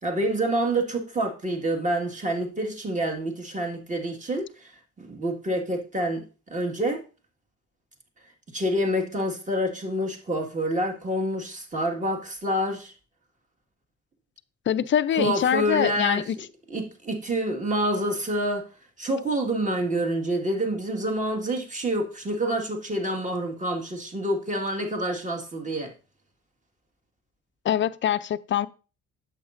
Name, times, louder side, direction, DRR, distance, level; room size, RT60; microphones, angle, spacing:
voice 1, 0.0-4.7 5.0-7.0 8.5-12.9 15.1-16.2 16.7-18.7 19.0-25.9, right 1 dB, 25° right, 1.8 m, -27 dB
voice 2, 14.7-16.4 27.6-28.7, left 10 dB, 40° left, 0.4 m, -24 dB
8.7 x 7.1 x 2.5 m
cardioid pair, 90°, 30 cm